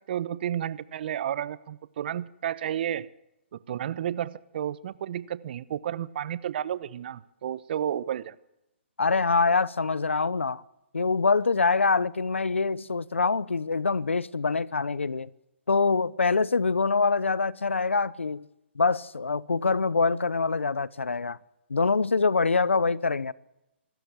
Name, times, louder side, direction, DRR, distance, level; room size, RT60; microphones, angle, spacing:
voice 1, 0.1-3.1 3.5-8.4, right 10 dB, 55° right, 1.0 m, -32 dB
voice 2, 9.0-10.6 10.9-15.3 15.7-18.4 18.8-21.4 21.7-23.3, left 4 dB, 90° left, 0.8 m, -25 dB
25.5 x 13.5 x 7.7 m
hypercardioid pair, 135°, 7 cm